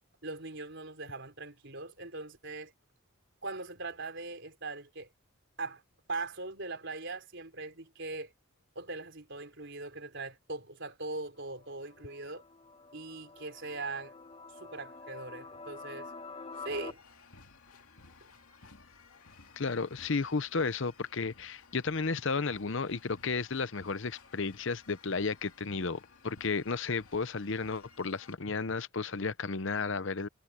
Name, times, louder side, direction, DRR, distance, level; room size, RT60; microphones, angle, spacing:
voice 1, 0.2-2.7 3.4-5.1 5.6-5.8 6.1-8.3 8.7-12.4 12.9-14.1 14.6-16.1 16.6-17.0, right 3 dB, 55° right, 4.4 m, -40 dB
sound 1, 11.4-16.9, left 3 dB, 30° left, 1.9 m, -47 dB
sound 2, 16.5-28.4, left 4 dB, 85° left, 2.4 m, -57 dB
voice 2, 19.6-30.3, left 4 dB, 55° left, 0.8 m, -33 dB
head